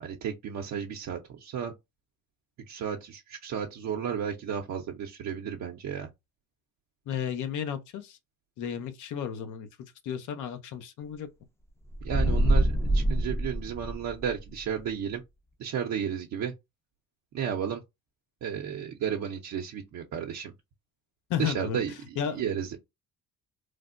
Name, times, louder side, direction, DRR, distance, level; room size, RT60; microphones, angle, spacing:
voice 1, 0.0-1.7 2.7-6.1 12.0-15.2 15.6-16.5 17.3-17.8 18.4-20.5 21.4-22.8, right 8 dB, 65° right, 0.6 m, -33 dB
voice 2, 7.1-8.2 8.6-9.7 10.0-11.3 21.3-21.8 22.2-22.4, left 8 dB, 80° left, 0.6 m, -33 dB
sound 1, 11.9-14.4, right 1 dB, 10° left, 0.4 m, -25 dB
3.2 x 2.1 x 2.4 m
cardioid pair, 90°, 30 cm